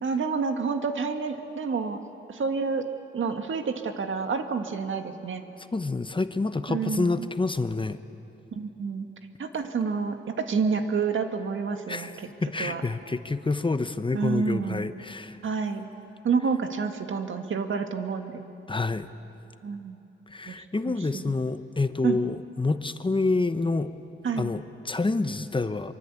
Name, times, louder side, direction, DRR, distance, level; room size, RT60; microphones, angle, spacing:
voice 1, 0.0-2.0 2.3-2.8 3.1-5.4 6.7-7.3 8.5-9.1 9.4-12.3 12.6-12.8 14.1-14.9 15.4-15.9 16.2-18.5 19.6-20.0 20.5-20.6 20.9-21.3 22.0-22.2 24.2-24.5, right 5 dB, 70° right, 6 dB, 1.8 m, -29 dB
voice 2, 5.7-8.0 11.9-15.4 18.7-19.1 20.3-23.9 24.4-25.9, left 3 dB, 25° left, 11 dB, 0.9 m, -28 dB
24.0 x 23.5 x 8.4 m, 2.9 s
cardioid pair, 85°, 21 cm